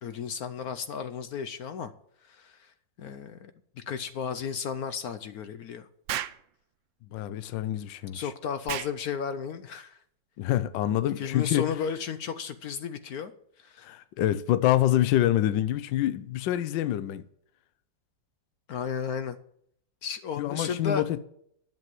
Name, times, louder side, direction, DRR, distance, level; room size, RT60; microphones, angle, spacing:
voice 1, 0.0-1.9 2.3-2.7 3.0-3.5 3.9-5.9 8.1-10.0 11.2-13.3 13.6-13.9 18.7-19.4 20.0-21.0, left 7 dB, 65° left, 1.0 m, -34 dB
Explosion, 6.1-6.4 8.7-9.0, right 12 dB, 85° right, 1.4 m, -32 dB
voice 2, 7.1-8.3 10.4-11.7 13.8-17.2 20.4-21.2, left 13 dB, 80° left, 1.3 m, -26 dB
11.0 x 7.8 x 7.6 m
omnidirectional pair, 2.0 m